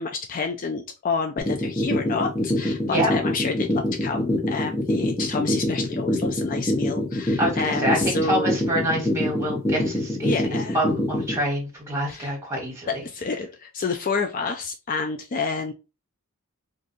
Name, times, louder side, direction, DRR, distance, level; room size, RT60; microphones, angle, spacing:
voice 1, 0.0-8.5 10.2-10.8 12.1-12.3 12.9-15.7, left 4 dB, 40° left, 5 dB, 0.3 m, -29 dB
sound 1, 1.4-11.4, equal, 10° left, 0.7 m, -24 dB
voice 2, 7.4-13.0, equal, 10° right, -3 dB, 1.4 m, -26 dB
2.6 x 2.4 x 3.9 m, 0.29 s
head